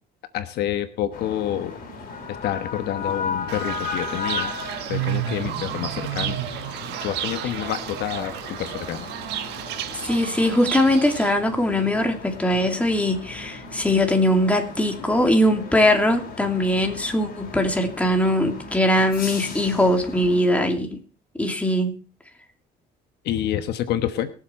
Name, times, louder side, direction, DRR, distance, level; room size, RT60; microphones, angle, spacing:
voice 1, 0.3-1.8 2.4-4.5 4.9-6.4 7.0-9.1 23.2-24.3, left 11 dB, 75° left, 10 dB, 1.2 m, -28 dB
sound 1, 1.1-20.4, left 4 dB, 60° left, 4.3 m, -36 dB
Fowl / Bird, 3.5-11.3, right 12 dB, 85° right, 1.5 m, -31 dB
voice 2, 10.0-21.0 21.4-21.9, left 1 dB, 10° left, 4 dB, 2.6 m, -21 dB
22.0 x 7.5 x 4.4 m, 0.38 s
cardioid pair, 110°, 17 cm